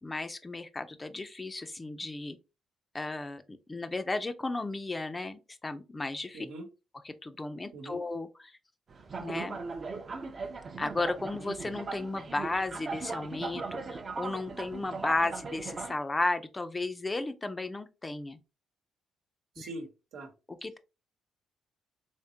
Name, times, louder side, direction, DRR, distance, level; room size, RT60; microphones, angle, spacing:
voice 1, 0.0-2.4 2.9-6.5 7.0-8.5 9.2-9.6 10.8-18.4 19.6-19.7 20.5-20.8, left 2 dB, 20° left, 0.4 m, -34 dB
voice 2, 6.3-6.7 7.7-8.0 19.5-20.3, right 2 dB, 85° right, 1.0 m, -42 dB
sound 1, 8.9-15.9, right 4 dB, 40° right, 0.6 m, -39 dB
3.5 x 3.2 x 2.7 m
cardioid pair, 90°, 0 cm